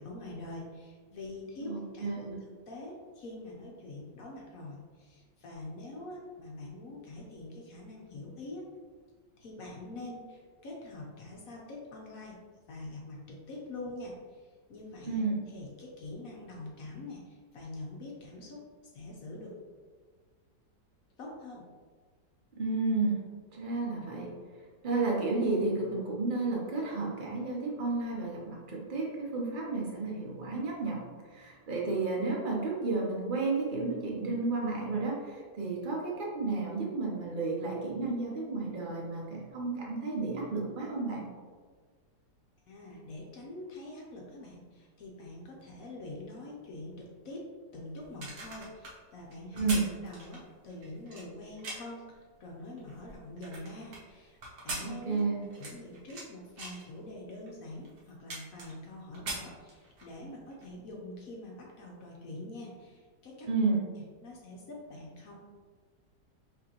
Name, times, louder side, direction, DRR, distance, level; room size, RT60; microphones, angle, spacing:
voice 1, 0.0-2.4 2.7-8.7 9.4-12.4 12.7-15.2 15.5-18.6 18.9-19.6 21.2-21.6 42.7-47.5 47.7-49.7 50.0-54.4 54.6-55.2 55.6-63.8 64.2-65.4, left 2 dB, 60° left, -2 dB, 1.0 m, -45 dB
voice 2, 1.7-2.4 15.0-15.4 22.6-23.2 23.5-24.3 24.8-31.0 31.3-41.2 49.5-49.8 54.8-55.4 63.4-63.8, right 3 dB, 45° right, -2 dB, 0.7 m, -32 dB
sound 1, 48.0-52.0 52.6-54.0 54.4-56.3 56.6-56.9 57.5-57.6 57.8-58.9 59.1-60.1 60.5-60.7, right 2 dB, 60° right, 1.4 m, -41 dB
5.2 x 3.0 x 2.9 m, 1.5 s
omnidirectional pair, 1.9 m